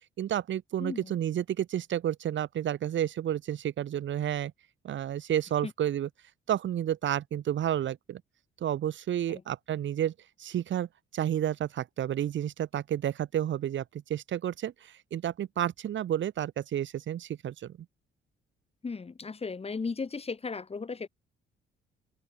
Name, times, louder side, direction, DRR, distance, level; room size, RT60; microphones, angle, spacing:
voice 1, 0.2-4.5 4.8-6.1 6.5-8.2 8.6-10.1 10.4-17.8, right 11 dB, 70° right, 5.9 m, -31 dB
voice 2, 0.8-1.1 5.6-5.7 9.3-9.4 18.8-21.1, left 4 dB, 30° left, 4.1 m, -36 dB
open air
cardioid pair, 90°, 20 cm